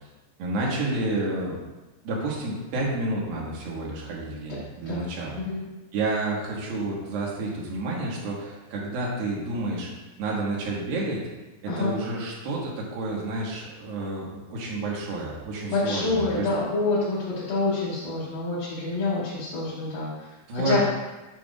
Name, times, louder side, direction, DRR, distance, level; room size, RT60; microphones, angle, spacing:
voice 1, 0.4-1.6 2.0-5.4 5.9-9.9 10.2-11.2 11.6-16.5 20.5-20.8, right 2 dB, 85° right, -3 dB, 3.1 m, -30 dB
voice 2, 15.7-20.1 20.5-20.8, left 3 dB, 70° left, -12 dB, 3.5 m, -27 dB
9.2 x 6.2 x 2.4 m, 1.1 s
omnidirectional pair, 4.1 m